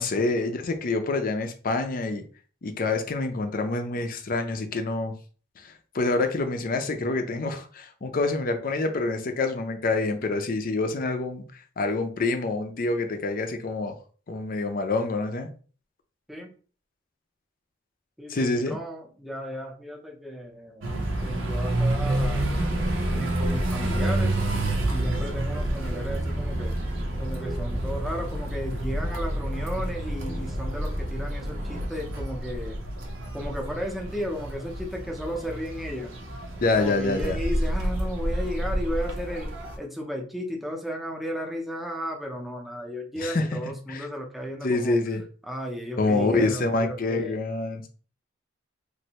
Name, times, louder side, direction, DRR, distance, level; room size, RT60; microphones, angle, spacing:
voice 1, 0.0-2.2 2.6-5.1 5.6-11.4 11.8-14.0 14.3-15.5 18.3-18.8 36.6-37.4 43.2-43.4 43.9-44.0 44.6-45.2 46.0-47.9, left 3 dB, 45° left, 6 dB, 0.5 m, -26 dB
voice 2, 18.2-20.9 21.2-22.5 23.1-24.3 24.9-26.8 27.2-32.8 33.3-36.1 36.8-39.5 39.8-45.0 45.4-47.4, equal, ahead, 0 dB, 0.6 m, -34 dB
sound 1, 20.8-39.8, right 1 dB, 90° right, 0.7 m, -29 dB
sound 2, 22.0-31.9, equal, 40° right, 0.6 m, -33 dB
3.1 x 2.6 x 2.9 m, 0.40 s
head